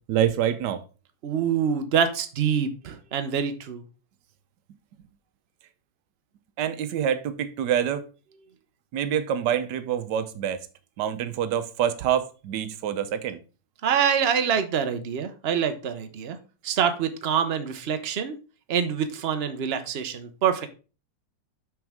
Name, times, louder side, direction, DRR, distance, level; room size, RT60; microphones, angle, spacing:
voice 1, 0.1-0.8 6.6-8.0 8.9-10.6 11.0-13.4, right 9 dB, 70° right, 1.3 m, -26 dB
voice 2, 1.2-3.8 13.8-16.4 16.6-18.4 18.7-20.7, right 7 dB, 55° right, 0.7 m, -25 dB
6.2 x 6.1 x 3.5 m
omnidirectional pair, 2.0 m